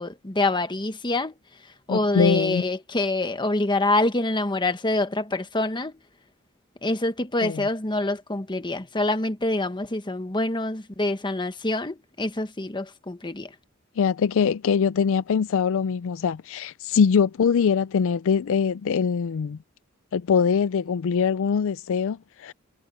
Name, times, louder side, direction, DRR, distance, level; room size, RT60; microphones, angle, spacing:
voice 1, 0.0-1.3 1.9-5.9 6.8-13.5, left 2 dB, 20° left, 1.3 m, -26 dB
voice 2, 1.9-2.6 7.4-7.6 14.0-19.6 20.1-22.5, left 6 dB, 65° left, 0.4 m, -23 dB
head